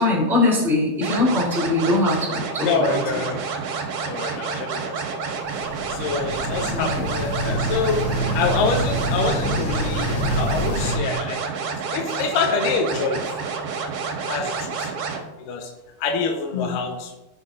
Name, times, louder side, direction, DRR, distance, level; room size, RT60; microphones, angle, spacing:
voice 1, 0.0-3.0 6.7-7.0 16.5-16.7, left 2 dB, ahead, -5 dB, 3.2 m, -22 dB
sound 1, 1.0-15.2, right 5 dB, 75° right, 3.2 m, -29 dB
voice 2, 2.6-3.4 4.0-5.3 5.9-8.0 8.3-11.5 11.9-13.2 14.3-14.9 15.4-15.7 16.0-17.2, left 4 dB, 70° left, 2 dB, 2.2 m, -26 dB
sound 2, 5.4-11.0, equal, 50° left, 3.0 m, -26 dB
16.5 x 7.3 x 2.7 m, 1.0 s
omnidirectional pair, 4.5 m